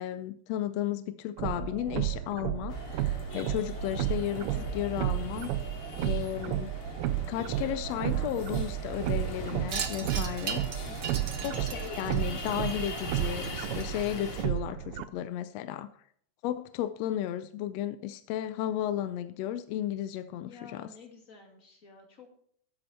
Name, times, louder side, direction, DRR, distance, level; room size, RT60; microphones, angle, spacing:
voice 1, 0.0-5.5 6.0-6.7 7.3-10.6 11.4-15.9 16.4-20.9, left 11 dB, 75° left, 12 dB, 1.6 m, -34 dB
sound 1, 1.4-15.0, right 13 dB, 80° right, 1.3 m, -33 dB
sound 2, 2.7-14.4, left 4 dB, 50° left, 3.0 m, -41 dB
Wind chime, 9.7-14.3, right 6 dB, 60° right, 1.0 m, -39 dB
voice 2, 10.9-11.3 20.4-22.4, left 4 dB, 30° left, 3 dB, 2.3 m, -52 dB
13.0 x 8.7 x 4.3 m, 0.63 s
omnidirectional pair, 3.3 m